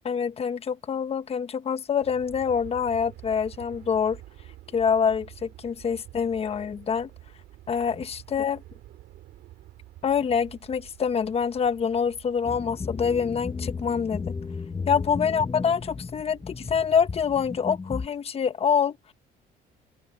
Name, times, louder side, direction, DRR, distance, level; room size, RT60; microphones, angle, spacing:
voice 1, 0.0-4.2 4.7-7.1 7.7-8.6 10.0-14.3 14.9-19.0, left 6 dB, 35° left, 1.2 m, -26 dB
Aircraft, 2.0-18.2, right 15 dB, 80° right, 3.4 m, -49 dB
sound 1, 12.4-18.1, left 4 dB, 20° left, 0.6 m, -34 dB
cardioid pair, 110°, 17 cm